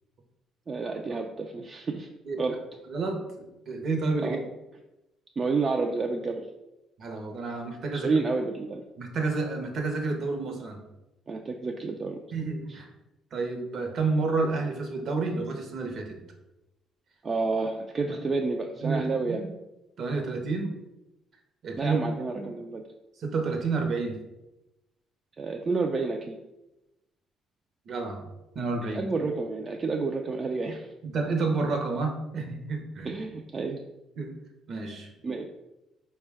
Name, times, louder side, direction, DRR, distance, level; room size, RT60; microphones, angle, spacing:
voice 1, 0.7-2.1 2.4-2.6 4.2-4.4 5.4-6.4 7.9-8.8 11.3-12.2 12.7-12.8 17.2-19.4 21.8-22.8 25.4-26.4 28.9-30.9 33.0-33.8 35.2-35.5, right 4 dB, 40° right, 2 dB, 0.3 m, -30 dB
voice 2, 2.9-4.4 7.0-8.2 9.0-10.8 12.3-12.9 13.3-16.2 18.0-18.2 18.8-19.5 20.0-20.7 21.6-22.0 22.3-22.5 23.2-24.2 27.9-28.3 28.5-29.1 31.0-33.1 34.2-34.3 34.7-35.1, right 3 dB, 60° right, 3 dB, 0.7 m, -30 dB
4.3 x 2.2 x 3.4 m, 0.98 s
hypercardioid pair, 55°, 0 cm